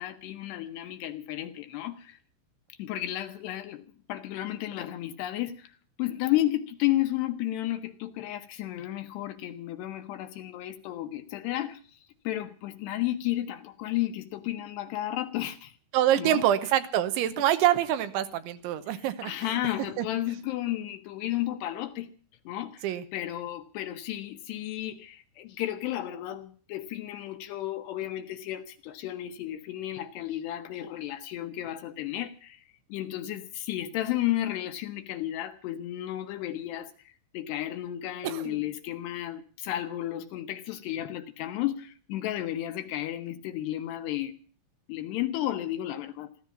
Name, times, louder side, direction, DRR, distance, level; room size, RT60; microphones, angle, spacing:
voice 1, 0.0-2.2 2.7-3.8 4.1-5.7 6.0-12.0 12.2-15.8 16.2-16.4 19.2-22.1 22.5-22.8 23.1-32.6 32.9-36.9 37.3-44.3 44.9-46.3, left 14 dB, 75° left, 2.7 m, -33 dB
voice 2, 15.9-19.5 20.0-20.1 22.8-23.0 38.2-38.6, right 12 dB, 80° right, 3.3 m, -26 dB
14.5 x 14.0 x 7.1 m
omnidirectional pair, 5.4 m